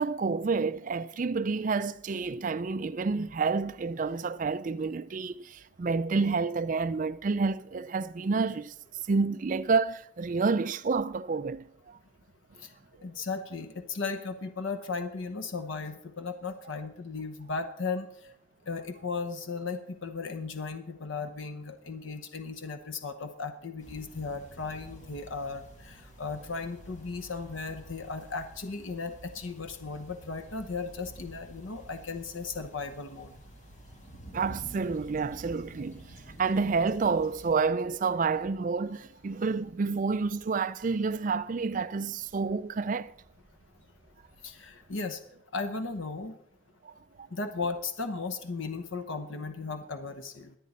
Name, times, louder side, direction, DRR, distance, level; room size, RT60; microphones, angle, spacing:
voice 1, 0.0-8.7 9.1-12.0 34.3-36.0 36.4-43.1 46.8-46.9 47.2-47.3, right 4 dB, 40° right, 0.4 m, -29 dB
voice 2, 13.0-18.3 18.7-33.3 44.4-45.2 45.5-46.4 47.3-50.6, left 4 dB, 70° left, 0.9 m, -36 dB
sound 1, 23.8-37.7, right 1 dB, 35° left, 2.2 m, -50 dB
sound 2, 37.1-45.0, equal, 10° right, 4.8 m, -63 dB
22.5 x 8.4 x 4.2 m
head